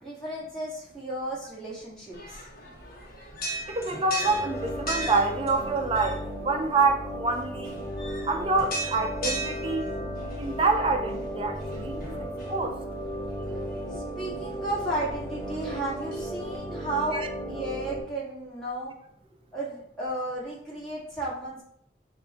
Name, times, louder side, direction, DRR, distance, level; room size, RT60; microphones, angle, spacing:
voice 1, 0.0-2.4 13.3-17.2 17.5-18.9 19.5-21.6, right 2 dB, 5° left, 1.9 m, -34 dB
sound 1, 2.1-16.6, equal, 55° left, 1.1 m, -39 dB
voice 2, 3.7-7.7 8.2-9.9 10.4-12.1 12.5-12.7 17.1-17.3, right 3 dB, 30° right, 0.5 m, -26 dB
sound 2, 4.2-18.0, equal, 20° left, 1.6 m, -35 dB
5.8 x 2.6 x 3.6 m
head